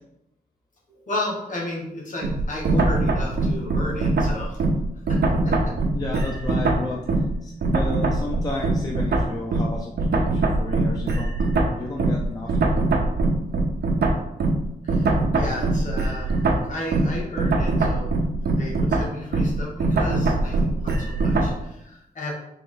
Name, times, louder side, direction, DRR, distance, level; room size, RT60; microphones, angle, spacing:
voice 1, 0.9-4.6 5.1-5.5 14.8-16.3 16.7-18.2 18.4-22.3, left 1 dB, 50° left, -3 dB, 1.3 m, -33 dB
sound 1, 2.2-7.4 7.6-21.6, right 2 dB, 90° right, 0.6 m, -22 dB
voice 2, 5.9-7.1 7.4-11.3 11.8-12.9, left 2 dB, 25° left, -1 dB, 0.4 m, -32 dB
3.7 x 2.9 x 3.7 m, 0.81 s
wide cardioid pair, 155°, 16 cm